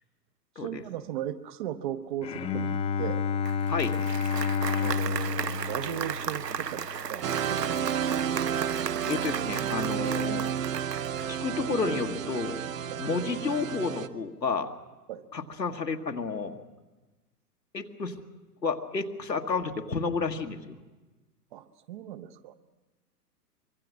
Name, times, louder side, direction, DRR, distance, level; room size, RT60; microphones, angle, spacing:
voice 1, 0.6-2.7 3.0-3.3 4.7-8.6 12.9-13.0 15.1-15.2 21.5-22.5, right 11 dB, 30° right, 12 dB, 0.8 m, -38 dB
Bowed string instrument, 2.2-7.5, left 5 dB, 15° left, 0.7 m, -30 dB
Applause, 3.4-11.4, right 7 dB, 75° right, 0.9 m, -36 dB
sound 1, 7.2-14.1, right 8 dB, 55° right, 0.9 m, -31 dB
voice 2, 9.1-10.5 11.3-12.6 13.0-14.7 15.3-16.6 17.7-18.2 18.6-20.8, left 4 dB, 80° left, 5 dB, 1.6 m, -31 dB
24.5 x 23.5 x 6.2 m, 1.2 s
figure-of-eight pair, 110°, 49 cm